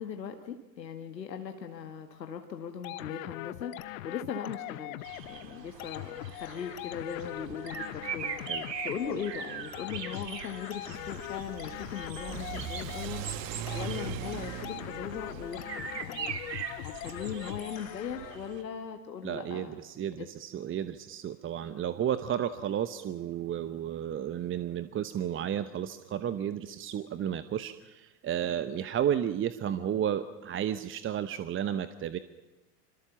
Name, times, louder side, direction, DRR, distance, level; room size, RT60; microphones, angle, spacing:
voice 1, 0.0-8.4 8.8-13.3 13.7-16.3 16.8-19.8, left 7 dB, 80° left, 6 dB, 1.9 m, -39 dB
sound 1, 2.8-18.6, left 16 dB, 55° left, 1.2 m, -42 dB
sound 2, 5.0-18.6, right 7 dB, 75° right, 2.9 m, -42 dB
Car / Accelerating revving vroom, 10.9-17.7, right 11 dB, 45° right, 1.7 m, -41 dB
voice 2, 19.2-32.2, right 10 dB, 25° right, 13 dB, 1.0 m, -32 dB
26.5 x 25.5 x 7.2 m, 1.0 s
hypercardioid pair, 90°, 50 cm